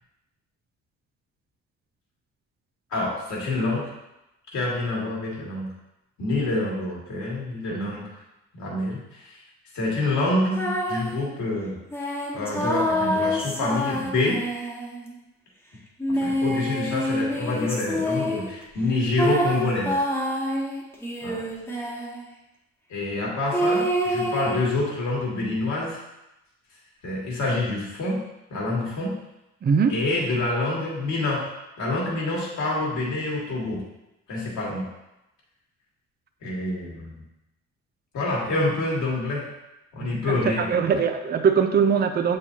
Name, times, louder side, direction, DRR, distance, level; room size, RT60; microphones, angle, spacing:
voice 1, 2.9-3.8 4.5-5.7 6.2-8.0 8.5-9.4 9.7-11.8 12.3-14.4 16.1-20.0 21.2-21.4 22.9-26.0 27.0-28.2 28.5-29.2 29.9-31.5 31.8-33.8 34.3-34.9 36.4-37.2 38.1-39.4 39.9-41.0, left 2 dB, 70° left, -4 dB, 2.2 m, -27 dB
sound 1, 10.5-11.2 11.9-15.1 16.0-18.5 19.2-22.2 23.5-24.6, equal, 10° left, 1.2 m, -27 dB
voice 2, 29.6-30.0 40.0-42.4, right 6 dB, 35° right, 7 dB, 0.5 m, -22 dB
7.1 x 4.7 x 2.8 m, 0.92 s
cardioid pair, 90°, 30 cm